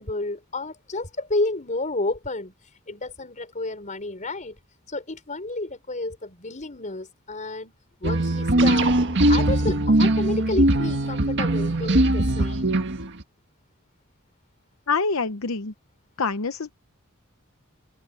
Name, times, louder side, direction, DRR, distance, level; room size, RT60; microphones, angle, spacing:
voice 1, 0.0-2.5 2.9-4.6 4.9-7.7 8.0-8.9 9.3-12.8, left 2 dB, 35° left, 5.0 m, -31 dB
sound 1, 8.0-13.2, right 1 dB, 55° right, 1.7 m, -21 dB
voice 2, 14.9-15.7 16.2-16.7, left 4 dB, 70° left, 0.9 m, -25 dB
head